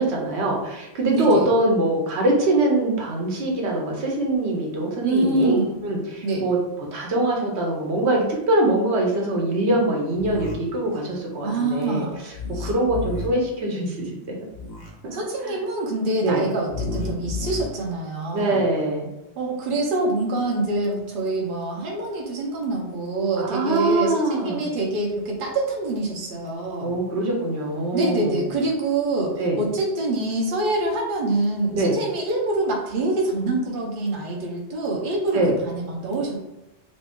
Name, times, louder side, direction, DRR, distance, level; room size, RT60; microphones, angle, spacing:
voice 1, 0.0-5.6 5.8-6.6 6.9-12.3 12.6-14.3 15.4-15.6 16.2-16.4 18.3-19.1 23.4-24.7 26.8-28.4 29.4-29.6 31.7-32.0 35.3-35.5, right 1 dB, 80° right, -1 dB, 1.1 m, -23 dB
voice 2, 1.1-1.4 5.0-5.8 6.2-6.4 11.4-12.2 12.5-12.7 15.1-18.6 19.4-27.0 27.9-36.4, right 2 dB, 55° right, -1 dB, 0.8 m, -25 dB
sound 1, 10.2-10.5 12.3-13.3 14.5-14.9 16.7-17.6, left 4 dB, 45° left, 0.9 m, -31 dB
3.0 x 2.7 x 3.5 m, 0.93 s
omnidirectional pair, 1.1 m